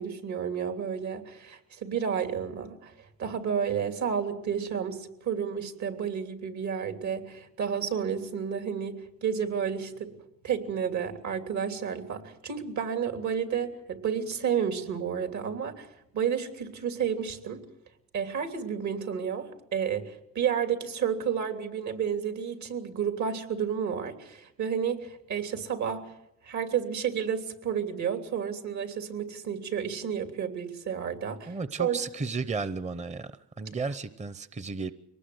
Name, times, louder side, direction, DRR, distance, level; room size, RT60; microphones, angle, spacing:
voice 1, 0.0-2.9 3.2-10.1 10.4-15.9 16.1-17.6 18.1-26.1 26.4-32.0, right 7 dB, 70° right, 7 dB, 3.2 m, -31 dB
voice 2, 31.5-33.3 33.6-34.9, right 4 dB, 25° right, 14 dB, 0.8 m, -33 dB
23.5 x 19.5 x 7.9 m, 0.79 s
cardioid pair, 90°, 30 cm